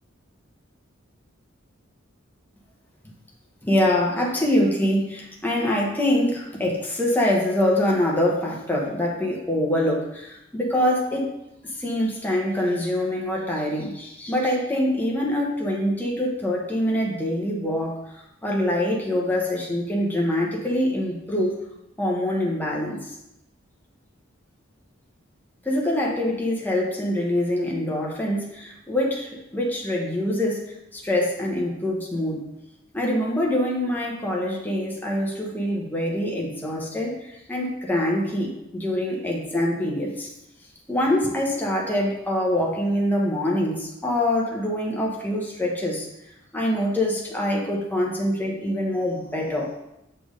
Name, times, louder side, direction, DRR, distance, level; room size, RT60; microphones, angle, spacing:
voice 1, 3.6-11.3 11.6-21.5 22.0-23.2 25.6-32.5 32.9-40.3 40.9-46.1 46.5-49.7, left 1 dB, 10° left, -2 dB, 1.0 m, -24 dB
6.1 x 3.4 x 5.1 m, 0.84 s
head